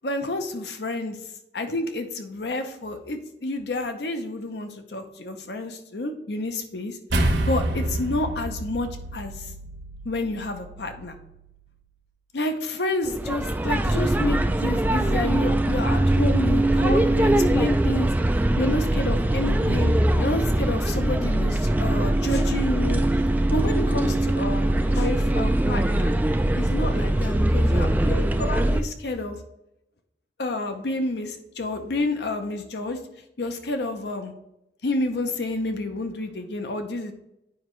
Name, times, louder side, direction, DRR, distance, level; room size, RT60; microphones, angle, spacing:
voice 1, 0.0-1.2 1.5-9.5 10.0-11.2 12.3-18.1 18.6-19.9 20.2-23.0 23.5-26.1 26.6-29.4 30.4-33.0 33.4-34.3 34.8-37.1, left 2 dB, 70° left, 7 dB, 0.7 m, -29 dB
sound 1, 7.1-11.7, right 1 dB, 90° right, 1.0 m, -29 dB
sound 2, 13.0-28.8, right 1 dB, 10° right, 0.3 m, -22 dB
9.4 x 5.0 x 3.1 m, 0.86 s
head